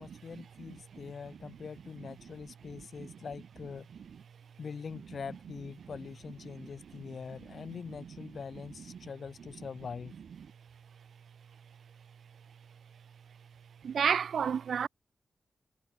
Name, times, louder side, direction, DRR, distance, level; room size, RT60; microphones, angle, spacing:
voice 1, 0.0-3.9 4.6-10.1, left 6 dB, 65° left, 1.9 m, -43 dB
voice 2, 2.7-3.1 6.5-7.0 8.0-8.1 8.9-9.1 13.8-14.9, right 7 dB, 90° right, 0.6 m, -33 dB
wide cardioid pair, 115°, 0 cm